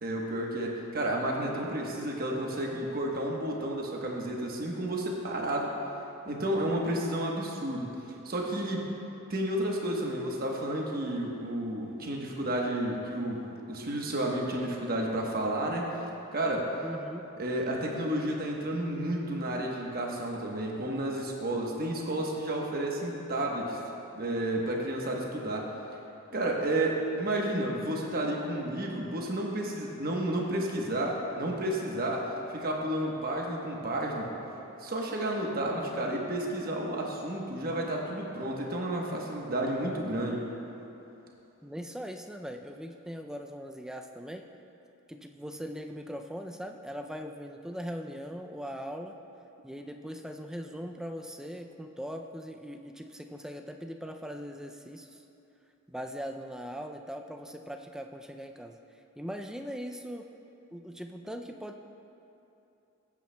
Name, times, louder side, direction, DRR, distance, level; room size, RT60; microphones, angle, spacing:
voice 1, 0.0-5.7 6.3-8.0 8.2-8.9 9.3-15.9 16.3-16.7 17.4-23.8 24.1-25.7 26.3-34.3 34.8-40.4, right 1 dB, 45° right, -1 dB, 1.1 m, -31 dB
voice 2, 16.8-17.3 35.7-36.2 41.6-44.4 45.1-49.2 49.6-55.2 55.9-58.8 59.2-60.3 60.7-61.8, equal, 5° right, 4 dB, 0.3 m, -40 dB
16.0 x 8.4 x 2.2 m, 2.9 s
head